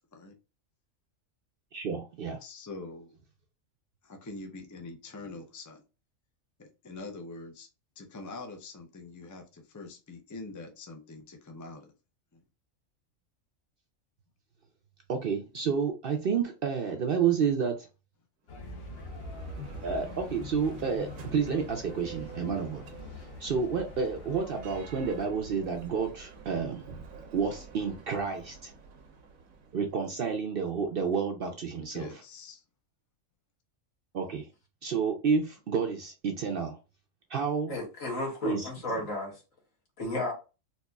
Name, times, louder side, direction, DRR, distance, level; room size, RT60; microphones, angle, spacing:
voice 1, 1.7-2.4 15.1-17.9 19.8-22.8 23.2-27.0 27.3-28.7 29.7-32.1 34.1-34.5 34.8-36.8 37.3-37.7 38.4-38.7, right 6 dB, 60° right, 0.6 m, -30 dB
voice 2, 2.4-3.1 4.0-5.8 6.6-7.7 8.0-11.9 12.3-12.4 31.9-32.6, left 3 dB, 30° left, 0.3 m, -44 dB
sound 1, 18.5-25.3, left 2 dB, 50° left, 0.9 m, -44 dB
Bell, 18.5-30.3, right 5 dB, 85° right, 1.2 m, -49 dB
voice 3, 37.7-39.4 40.0-40.3, left 2 dB, 80° left, 2.0 m, -33 dB
4.1 x 2.8 x 2.3 m
omnidirectional pair, 1.4 m